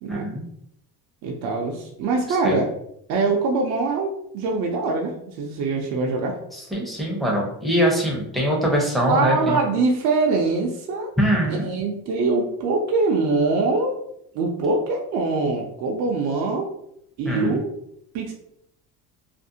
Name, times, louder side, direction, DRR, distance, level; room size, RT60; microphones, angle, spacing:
voice 1, 0.1-0.4 2.4-2.6 6.5-9.5 11.2-11.6 17.3-17.6, equal, ahead, -2 dB, 0.6 m, -22 dB
voice 2, 1.2-2.7 3.1-6.4 9.1-11.1 11.6-14.0 14.3-16.7 17.2-17.7 18.1-18.3, right 3 dB, 55° right, 0 dB, 0.5 m, -23 dB
2.5 x 2.0 x 2.7 m, 0.73 s
cardioid pair, 120°, 36 cm